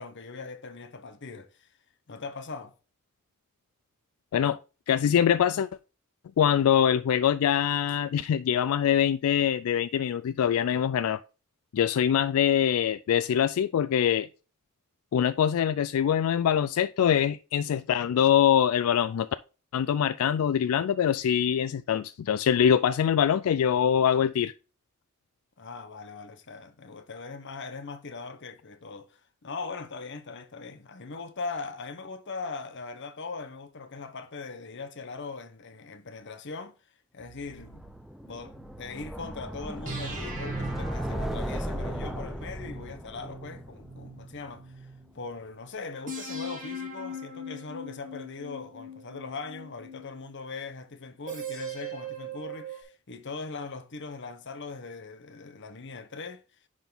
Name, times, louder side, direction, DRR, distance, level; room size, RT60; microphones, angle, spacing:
voice 1, 0.0-1.7 2.1-2.7 25.6-36.8 37.1-37.8 38.2-44.9 45.1-56.4, left 4 dB, 55° left, 0.9 m, -40 dB
voice 2, 4.9-5.7 6.4-11.2 11.7-14.3 15.1-19.3 19.7-24.5, left 9 dB, 75° left, 0.3 m, -24 dB
sound 1, 37.2-39.2 39.9-45.1 46.1-50.3 51.3-52.8, right 1 dB, 35° right, 2.1 m, -40 dB
sound 2, 37.5-44.6, equal, ahead, 0.5 m, -37 dB
10.5 x 3.7 x 3.8 m
head